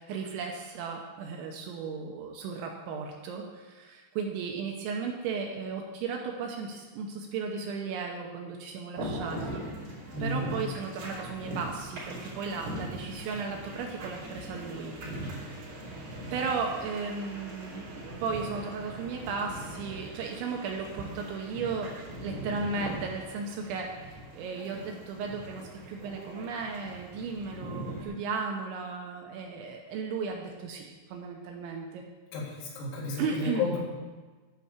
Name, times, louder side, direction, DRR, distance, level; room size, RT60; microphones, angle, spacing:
voice 1, 0.0-9.6 10.2-15.6 16.3-21.9 22.2-32.0 33.2-33.7, right 5 dB, 80° right, 1 dB, 2.9 m, -35 dB
sound 1, 9.0-28.1, right 1 dB, 55° right, 5.1 m, -41 dB
voice 2, 10.1-10.5 32.3-33.8, left 4 dB, 85° left, -3 dB, 4.8 m, -32 dB
12.0 x 4.7 x 7.1 m, 1.3 s
omnidirectional pair, 5.9 m